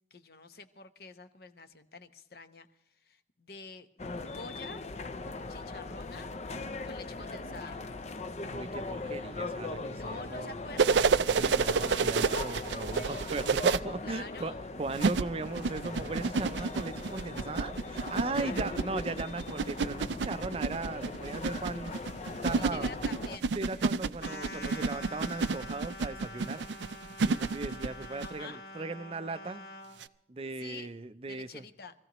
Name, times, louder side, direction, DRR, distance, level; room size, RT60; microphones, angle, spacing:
voice 1, 0.1-2.7 3.0-4.9 5.5-6.3 6.8-7.8 9.9-11.1 11.7-13.3 14.0-14.6 18.3-18.8 22.2-24.0 28.2-28.6 30.6-30.9 31.3-31.9, left 3 dB, 60° left, 0.9 m, -48 dB
sound 1, 4.0-23.4, left 3 dB, 40° left, 0.5 m, -40 dB
voice 2, 8.5-10.5 11.3-21.9 22.4-22.9 23.5-26.6 27.2-29.6 30.3-31.6, right 3 dB, 35° right, 0.5 m, -38 dB
sound 2, 10.8-13.8 14.9-28.3 30.0-30.1, right 5 dB, 85° right, 0.5 m, -29 dB
sound 3, 24.2-30.0, left 2 dB, 80° left, 2.2 m, -46 dB
24.0 x 15.0 x 3.0 m
head